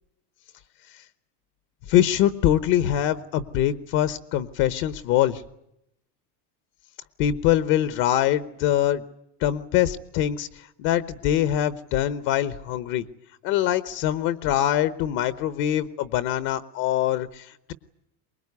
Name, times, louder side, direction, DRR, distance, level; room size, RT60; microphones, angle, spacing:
voice 1, 1.9-5.4 7.2-9.0 9.4-10.5 10.8-13.0 13.4-17.7, left 12 dB, 40° left, 14 dB, 1.0 m, -23 dB
24.0 x 21.0 x 9.6 m, 0.81 s
supercardioid pair, 165°, 48 cm